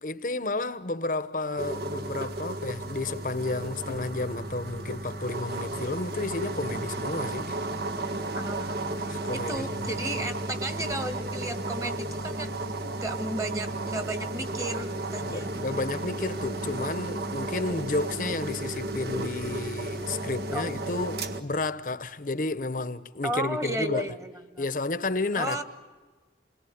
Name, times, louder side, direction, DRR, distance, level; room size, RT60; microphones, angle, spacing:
voice 1, 0.0-7.6 9.1-10.0 15.2-24.1 24.6-25.6, left 2 dB, 50° left, 1.0 m, -31 dB
sound 1, 1.6-21.4, right 2 dB, 60° right, 1.7 m, -33 dB
voice 2, 8.3-8.8 9.3-12.5 13.0-15.5 20.5-20.7 23.2-24.6 25.4-25.6, right 1 dB, 20° right, 1.7 m, -34 dB
28.0 x 21.5 x 9.4 m
head